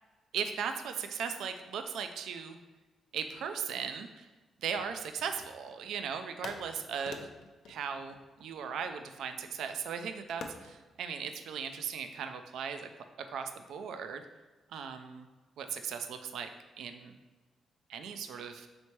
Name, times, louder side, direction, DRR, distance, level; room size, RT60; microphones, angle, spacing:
voice 1, 0.3-2.6 3.1-4.3 4.6-7.3 7.7-12.9 13.3-14.2 14.7-15.3 15.6-16.5 16.8-17.1 17.9-18.7, right 7 dB, 85° right, 8 dB, 0.3 m, -38 dB
sound 1, 4.8-5.9 6.4-8.9 10.4-10.8, left 4 dB, 75° left, 0.4 m, -47 dB
4.3 x 3.3 x 3.1 m, 1.3 s
cardioid pair, 75°, 0 cm